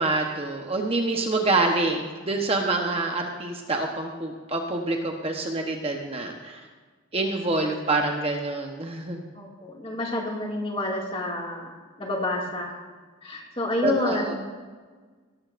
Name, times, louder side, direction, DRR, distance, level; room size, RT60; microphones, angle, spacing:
voice 1, 0.0-6.6 7.1-9.2 13.8-14.2, right 2 dB, 30° right, 2 dB, 1.0 m, -26 dB
voice 2, 9.4-11.7 12.0-12.8 13.2-14.6, left 2 dB, 25° left, -1 dB, 2.2 m, -29 dB
18.0 x 13.5 x 2.6 m, 1.4 s
head